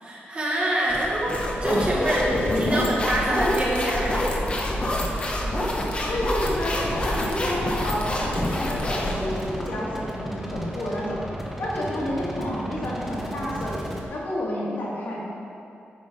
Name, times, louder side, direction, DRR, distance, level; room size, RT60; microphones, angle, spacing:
voice 1, 0.0-4.3, right 1 dB, 30° right, -5 dB, 1.7 m, -26 dB
sound 1, 0.9-9.7, left 1 dB, 30° left, 0.9 m, -27 dB
voice 2, 2.0-2.6 4.4-4.5 6.1-11.2 11.6-13.8 14.1-15.2, left 1 dB, 60° left, -6 dB, 2.2 m, -30 dB
sound 2, 6.5-14.0, right 1 dB, 5° right, 1.0 m, -35 dB
9.3 x 5.5 x 5.2 m, 2.7 s
wide cardioid pair, 150°, 4 cm